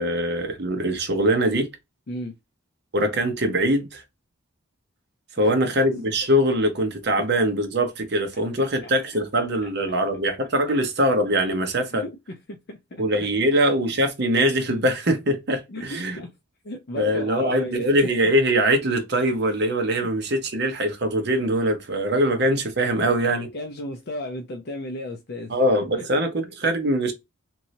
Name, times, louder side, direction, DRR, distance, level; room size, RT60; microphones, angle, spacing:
voice 1, 0.0-1.7 2.9-4.0 5.4-12.0 13.0-16.2 17.0-23.5 25.5-27.1, right 1 dB, 50° right, 0.8 m, -22 dB
voice 2, 5.4-5.8 8.6-8.9 11.9-13.3 15.7-15.9 16.2-16.3 16.6-17.9 23.2-25.6 26.2-26.3, left 1 dB, 50° left, 0.5 m, -35 dB
3.1 x 2.7 x 2.7 m
head